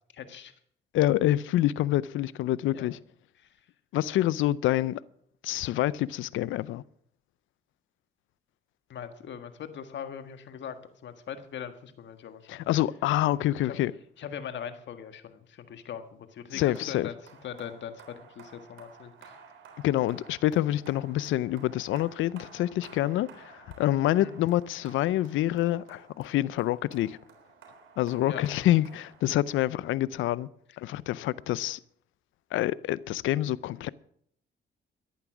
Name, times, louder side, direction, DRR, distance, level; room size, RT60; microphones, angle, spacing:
voice 1, 0.1-0.5 2.7-2.9 3.4-3.5 8.9-10.8 11.0-12.6 13.6-13.8 14.2-17.1 17.4-19.3 24.2-24.4 28.3-28.7, left 8 dB, 65° left, 1.7 m, -41 dB
voice 2, 0.9-3.0 3.9-5.0 5.4-6.8 12.5-13.9 16.5-17.1 19.8-27.2 28.0-30.5 30.8-31.8 32.5-33.9, left 14 dB, 85° left, 0.6 m, -27 dB
sound 1, 16.8-29.8, right 5 dB, 80° right, 3.6 m, -53 dB
14.0 x 11.0 x 6.1 m
cardioid pair, 90°, 20 cm